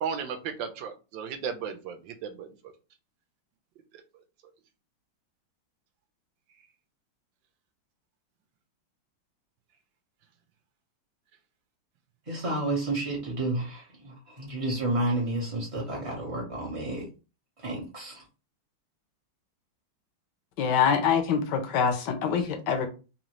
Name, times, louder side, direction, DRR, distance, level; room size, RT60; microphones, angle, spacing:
voice 1, 0.0-2.0 2.2-2.5, right 7 dB, 70° right, 1.3 m, -34 dB
voice 2, 12.3-17.1 17.6-18.2, right 2 dB, 30° right, 0.6 m, -31 dB
voice 3, 20.6-22.9, left 7 dB, 65° left, 1.1 m, -25 dB
3.9 x 2.7 x 3.0 m
omnidirectional pair, 2.3 m